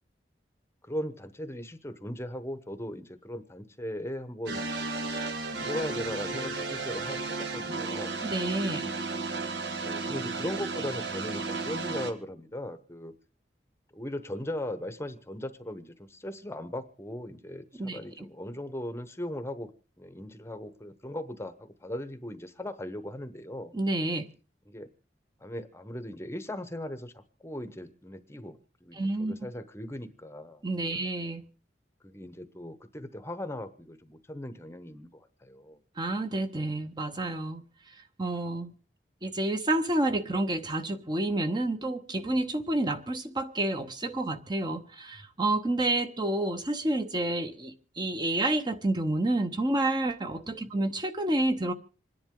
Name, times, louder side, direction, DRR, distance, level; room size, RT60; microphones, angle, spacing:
voice 1, 0.8-4.6 5.6-8.2 9.8-13.1 13.9-19.7 20.0-23.7 24.7-24.9 25.4-31.0 32.0-35.8 50.4-50.7, left 1 dB, 15° left, 0.9 m, -38 dB
sound 1, 4.5-12.1, right 3 dB, 80° right, 1.7 m, -33 dB
voice 2, 8.2-8.9 17.8-18.2 23.7-24.3 28.9-29.3 30.6-31.4 36.0-37.6 38.2-38.7 39.2-51.7, right 2 dB, 25° right, 0.9 m, -29 dB
27.0 x 10.5 x 3.7 m
head